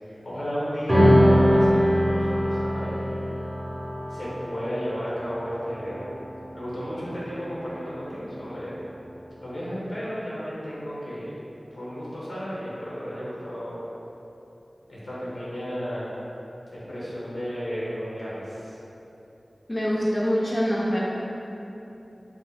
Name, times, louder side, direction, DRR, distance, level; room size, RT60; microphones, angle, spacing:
voice 1, 0.0-3.2 4.1-6.0 6.5-8.8 9.4-11.4 11.7-13.8 14.9-16.1 16.7-18.8, equal, 90° left, -9 dB, 0.9 m, -33 dB
sound 1, 0.9-7.6, equal, 15° right, 0.7 m, -23 dB
voice 2, 19.7-21.0, equal, 35° left, -6 dB, 0.4 m, -24 dB
2.7 x 2.1 x 3.9 m, 3.0 s
wide cardioid pair, 45°, 0 cm